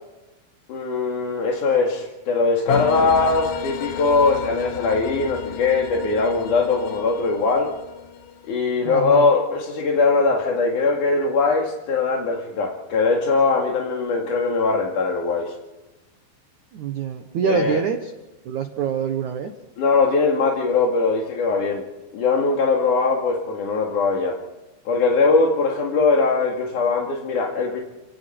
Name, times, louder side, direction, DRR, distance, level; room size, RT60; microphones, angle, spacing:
voice 1, 0.7-7.7 8.4-15.5 17.5-17.8 19.8-21.8 22.1-24.4 24.9-27.8, left 4 dB, 50° left, -1 dB, 3.2 m, -21 dB
sound 1, 2.7-8.7, left 9 dB, 65° left, 2.2 m, -32 dB
voice 2, 8.9-9.3 16.7-18.1 18.4-19.5, right 7 dB, 80° right, 6 dB, 1.7 m, -25 dB
30.0 x 19.0 x 4.6 m, 1.0 s
omnidirectional pair, 5.4 m